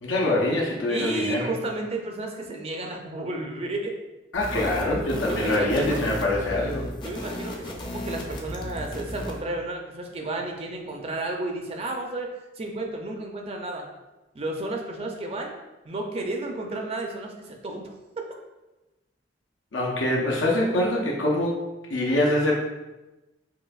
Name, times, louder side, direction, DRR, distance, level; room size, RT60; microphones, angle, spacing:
voice 1, 0.0-1.5 4.3-6.8 19.7-21.6 21.9-22.6, left 1 dB, 85° left, -2 dB, 0.7 m, -24 dB
voice 2, 0.9-3.9 5.3-6.0 7.0-13.9 14.3-15.6 15.9-17.9, right 2 dB, 35° right, 2 dB, 0.4 m, -32 dB
sound 1, 4.3-9.4, equal, 25° left, 0.5 m, -35 dB
5.6 x 2.6 x 2.3 m, 1.1 s
head